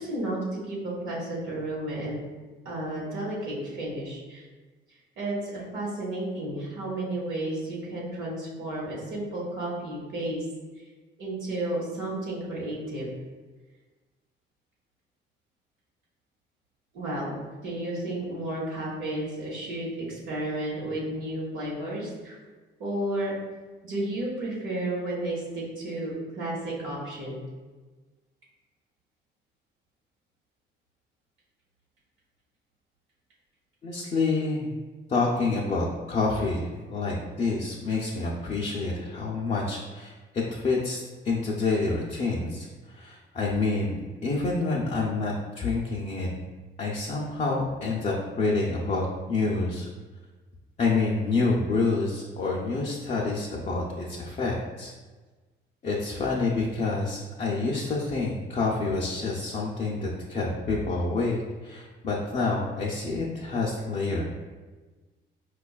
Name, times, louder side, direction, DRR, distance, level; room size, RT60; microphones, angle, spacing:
voice 1, 0.0-2.2 2.6-4.5 5.2-10.4 11.2-13.1 16.9-22.4 22.8-23.3 23.8-27.4, right 1 dB, 85° right, -6 dB, 0.9 m, -32 dB
voice 2, 33.8-34.7 35.1-40.1 40.5-46.3 46.8-49.9 50.8-54.9 55.8-64.2, left 3 dB, 35° left, -3 dB, 0.5 m, -28 dB
4.8 x 2.3 x 2.3 m, 1.3 s
cardioid pair, 90°, 20 cm